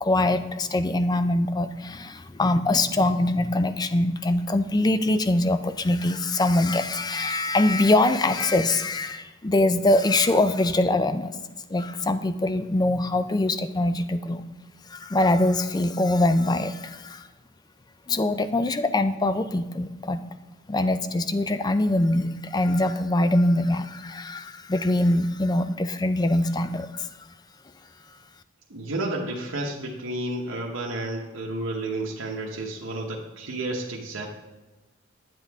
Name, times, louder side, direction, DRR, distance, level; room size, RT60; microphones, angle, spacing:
voice 1, 0.0-11.4 11.7-14.4 14.9-17.3 18.1-20.3 20.7-27.2, left 2 dB, 20° left, 11 dB, 0.4 m, -23 dB
voice 2, 28.7-34.3, right 2 dB, 80° right, -3 dB, 1.0 m, -31 dB
10.0 x 7.7 x 3.5 m, 1.2 s
head